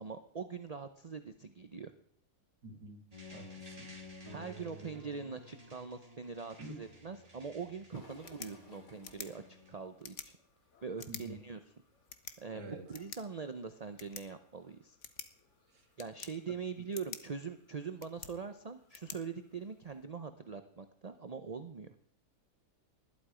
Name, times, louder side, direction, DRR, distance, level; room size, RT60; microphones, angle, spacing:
voice 1, 0.0-1.9 4.3-10.3 10.8-11.6 12.4-15.0 16.0-21.9, right 5 dB, 40° right, 9 dB, 0.5 m, -43 dB
voice 2, 2.6-3.0 3.3-3.9 6.6-6.7 11.1-11.4 12.5-12.9 15.7-15.8, right 2 dB, 80° right, 6 dB, 2.9 m, -47 dB
sound 1, 3.1-9.7, left 1 dB, 20° right, 4.0 m, -52 dB
sound 2, 7.9-19.8, left 3 dB, 80° left, 3.9 m, -65 dB
sound 3, 8.0-20.0, left 7 dB, 50° left, 1.3 m, -52 dB
19.5 x 12.0 x 5.0 m, 0.63 s
omnidirectional pair, 1.8 m